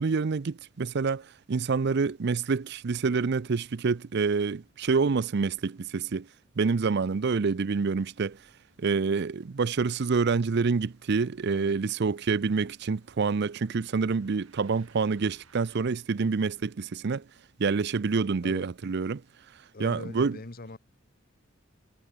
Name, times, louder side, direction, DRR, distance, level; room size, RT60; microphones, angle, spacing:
voice 1, 0.0-6.3 6.6-8.4 8.8-17.2 17.6-19.2 19.8-20.4, right 4 dB, 55° right, 0.5 m, -27 dB
sound 1, 8.1-15.8, right 5 dB, 75° right, 6.5 m, -64 dB
voice 2, 19.7-20.8, left 2 dB, 45° left, 1.2 m, -42 dB
head